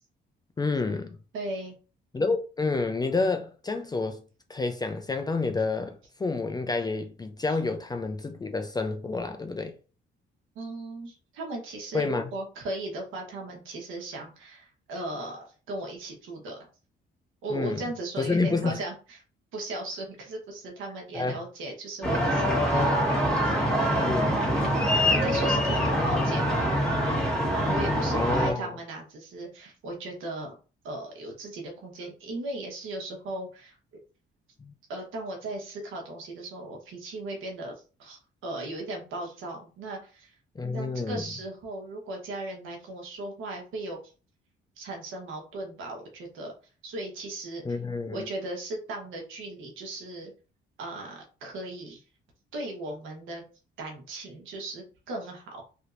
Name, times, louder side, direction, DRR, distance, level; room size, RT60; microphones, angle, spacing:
voice 1, 0.6-1.2 2.1-4.2 4.5-9.7 11.9-12.3 17.5-17.8 18.2-18.8 21.1-21.4 24.0-24.4 25.8-26.3 28.1-28.7 34.6-34.7 40.6-41.2 47.7-48.3, left 3 dB, 20° left, 0.4 m, -29 dB
voice 2, 1.3-1.7 7.5-7.6 10.5-16.6 17.4-19.2 19.5-22.9 23.2-23.6 24.6-26.8 27.7-30.5 30.8-33.8 34.9-37.7 38.0-40.3 40.7-44.1 44.8-46.5 46.8-47.8 48.1-50.3 50.8-52.0 52.5-53.4 53.8-55.6, right 2 dB, 85° right, 1.2 m, -37 dB
sound 1, 22.0-28.5, equal, 5° left, 1.5 m, -24 dB
3.3 x 2.8 x 2.5 m
cardioid pair, 90°, 20 cm